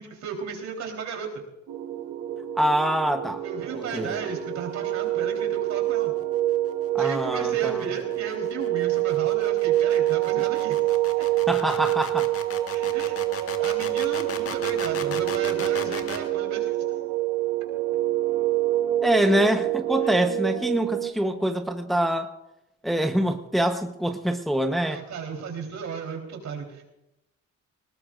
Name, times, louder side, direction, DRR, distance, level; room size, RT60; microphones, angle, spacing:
voice 1, 0.0-1.4 3.4-6.1 7.0-10.8 12.7-16.8 20.0-20.2 24.9-26.8, right 6 dB, 70° right, 1 dB, 3.9 m, -35 dB
sound 1, 1.7-21.1, right 14 dB, 85° right, 1.1 m, -26 dB
voice 2, 2.6-3.4 3.7-4.2 6.9-7.9 11.5-12.3 19.0-22.3 22.8-25.0, right 1 dB, ahead, 6 dB, 1.0 m, -25 dB
sound 2, 7.0-16.3, left 6 dB, 50° left, 1.6 m, -37 dB
19.5 x 19.5 x 2.6 m, 0.89 s
cardioid pair, 90°, 30 cm